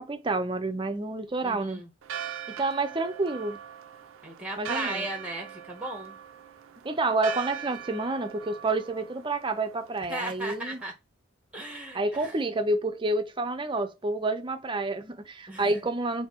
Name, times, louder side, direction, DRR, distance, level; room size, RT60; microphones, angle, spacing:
voice 1, 0.0-1.8 2.5-3.6 4.6-5.1 6.8-10.8 11.9-16.3, right 2 dB, 25° right, 0.6 m, -29 dB
voice 2, 1.4-1.9 4.2-6.2 10.1-10.9 11.5-12.3 15.5-15.7, right 1 dB, 5° right, 1.0 m, -36 dB
Church bell, 2.0-10.9, right 8 dB, 70° right, 0.4 m, -41 dB
4.2 x 2.7 x 3.7 m
head